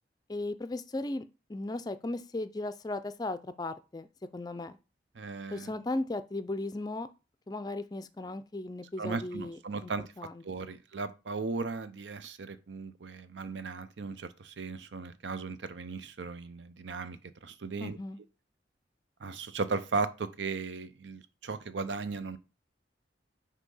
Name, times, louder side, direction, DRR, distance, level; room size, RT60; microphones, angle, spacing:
voice 1, 0.3-1.2 1.5-4.8 5.5-7.1 7.5-9.9 10.2-10.7 17.8-18.2, left 2 dB, 20° left, 0.4 m, -36 dB
voice 2, 5.2-5.7 9.0-10.1 10.4-18.0 19.2-22.4, right 4 dB, 90° right, 0.6 m, -36 dB
6.3 x 2.8 x 5.4 m
head